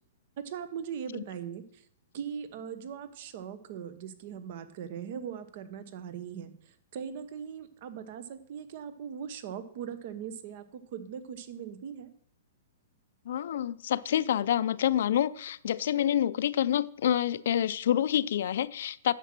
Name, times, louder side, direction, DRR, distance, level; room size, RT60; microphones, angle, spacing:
voice 1, 0.4-1.8 2.1-12.1, right 8 dB, 45° right, 13 dB, 1.0 m, -40 dB
voice 2, 13.3-19.1, left 10 dB, 60° left, 16 dB, 0.5 m, -27 dB
10.0 x 7.5 x 6.0 m, 0.67 s
hypercardioid pair, 165°, 0 cm